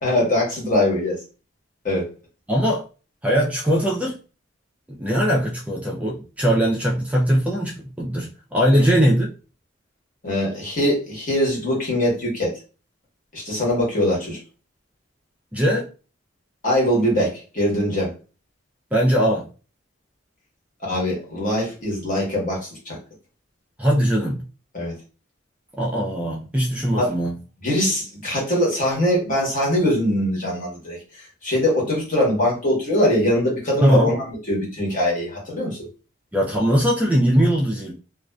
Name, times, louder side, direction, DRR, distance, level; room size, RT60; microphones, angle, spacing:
voice 1, 0.0-1.2 1.8-2.1 8.7-8.8 10.2-12.6 13.3-14.4 16.6-18.1 20.8-23.0 24.7-24.9 27.0-27.1 27.6-31.0 31.4-35.8, left 1 dB, 45° left, -3 dB, 1.1 m, -22 dB
voice 2, 2.5-2.8 3.2-4.2 4.9-9.3 15.5-15.9 18.9-19.4 23.8-24.4 25.8-27.4 33.8-34.1 36.3-37.9, equal, 10° right, -2 dB, 0.3 m, -20 dB
2.4 x 2.3 x 2.2 m, 0.34 s
head